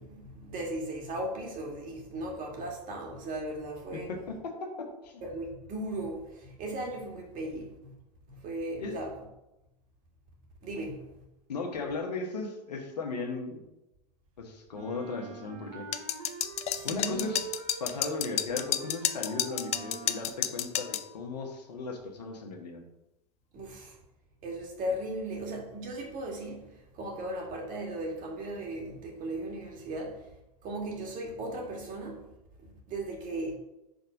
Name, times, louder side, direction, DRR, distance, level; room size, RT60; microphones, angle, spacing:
voice 1, 0.0-4.1 5.2-7.9 8.3-9.1 10.6-11.0 16.7-17.4 23.5-23.9 24.4-26.7 26.9-30.2 30.6-32.3 32.6-33.6, right 1 dB, 40° right, 2.0 m, -37 dB
voice 2, 3.9-5.2 8.8-9.0 11.5-13.6 14.4-15.9 16.8-17.4 17.8-22.8, left 4 dB, 85° left, 1.2 m, -36 dB
Wind instrument woodwind instrument, 14.7-16.9 17.2-20.3, right 7 dB, 60° right, 0.9 m, -44 dB
sound 1, 15.9-21.1, left 11 dB, 30° left, 0.4 m, -31 dB
5.3 x 3.6 x 5.1 m
hypercardioid pair, 100°, 21 cm